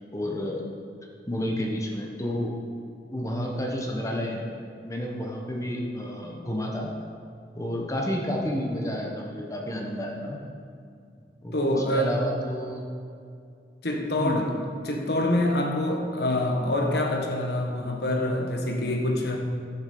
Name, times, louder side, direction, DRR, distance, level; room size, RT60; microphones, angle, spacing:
voice 1, 0.1-0.6 1.3-2.6 3.1-4.4 4.8-6.9 7.5-10.4 11.4-11.6 11.9-12.8 14.2-14.4, equal, 20° left, 0 dB, 1.2 m, -30 dB
voice 2, 11.5-12.2 13.8-14.5 14.8-19.4, left 1 dB, 60° left, 2 dB, 1.4 m, -26 dB
13.5 x 7.3 x 5.4 m, 2.3 s
head